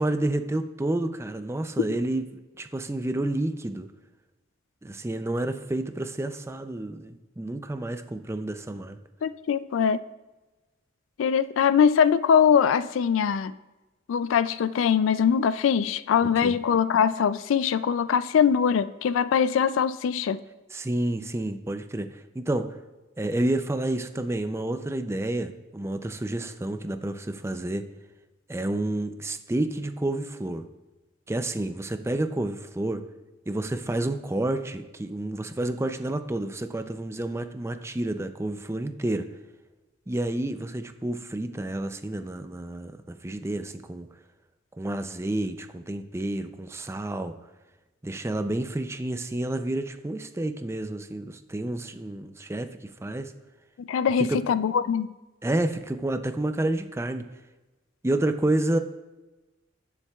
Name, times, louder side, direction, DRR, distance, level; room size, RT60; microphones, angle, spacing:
voice 1, 0.0-2.2 2.6-3.9 4.8-9.0 16.4-16.6 20.7-22.7 23.2-27.8 28.5-30.6 31.3-33.0 33.5-39.3 40.1-44.1 44.8-47.3 48.0-53.3 54.2-54.4 55.4-57.2 58.0-58.8, right 1 dB, 15° right, 8 dB, 0.4 m, -29 dB
voice 2, 9.2-10.0 11.2-13.5 14.1-20.4 53.8-55.1, left 7 dB, 80° left, 15 dB, 0.3 m, -22 dB
17.5 x 7.2 x 2.3 m, 1.1 s
head